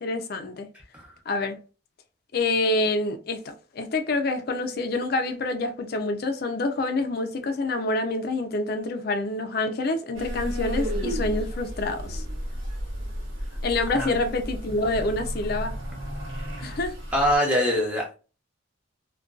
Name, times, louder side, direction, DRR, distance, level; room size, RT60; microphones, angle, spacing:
voice 1, 0.0-0.7 1.3-1.6 2.3-12.2 13.6-15.8 16.6-17.0, left 2 dB, 50° left, 0.4 m, -27 dB
sound 1, 10.1-17.4, equal, 85° right, 1.0 m, -32 dB
voice 2, 17.1-18.1, equal, 5° right, 0.7 m, -23 dB
2.5 x 2.2 x 2.3 m
head